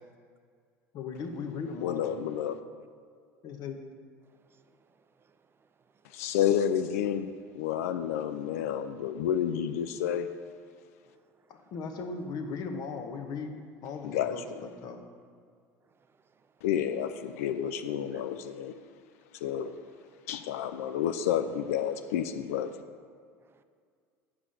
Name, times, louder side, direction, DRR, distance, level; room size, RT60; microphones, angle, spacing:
voice 1, 0.9-2.2 3.4-3.8 11.5-13.5 13.8-15.0, left 4 dB, 55° left, 5 dB, 1.0 m, -38 dB
voice 2, 1.8-2.6 6.0-10.3 14.0-14.4 16.6-18.8 19.4-19.7 20.3-22.7, left 9 dB, 80° left, 9 dB, 0.4 m, -30 dB
voice 3, 4.2-6.3 11.1-11.7 15.8-16.6 18.1-18.2 20.1-20.2 23.4-23.6, right 5 dB, 30° right, 10 dB, 0.5 m, -67 dB
7.6 x 4.8 x 5.6 m, 2.1 s
hypercardioid pair, 80°, 8 cm